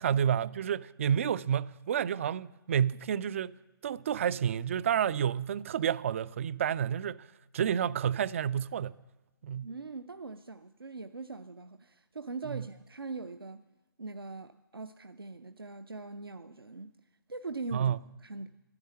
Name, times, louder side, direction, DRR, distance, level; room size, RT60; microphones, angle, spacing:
voice 1, 0.0-3.6 3.8-7.3 7.5-8.9 9.4-9.7 12.5-12.6 17.7-18.0, right 9 dB, 35° right, 0.4 m, -30 dB
voice 2, 9.6-13.6 14.0-16.9 17.3-17.9 18.2-18.5, right 3 dB, 80° right, 0.6 m, -41 dB
12.5 x 9.7 x 8.7 m
figure-of-eight pair, 135°, 12 cm